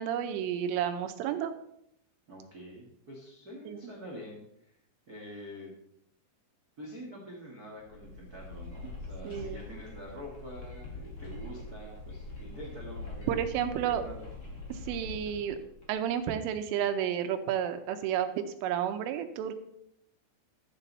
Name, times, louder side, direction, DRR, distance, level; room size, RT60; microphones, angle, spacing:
voice 1, 0.0-1.5 3.7-3.9 9.2-9.6 13.3-14.0 14.9-15.6 15.9-19.5, right 9 dB, 80° right, 8 dB, 3.3 m, -31 dB
voice 2, 2.3-4.4 5.1-5.7 6.8-13.3 13.7-14.2, equal, 65° right, -2 dB, 0.9 m, -46 dB
sound 1, 7.9-16.3, left 3 dB, 40° left, 1.5 m, -43 dB
13.0 x 8.4 x 4.2 m, 0.74 s
omnidirectional pair, 5.7 m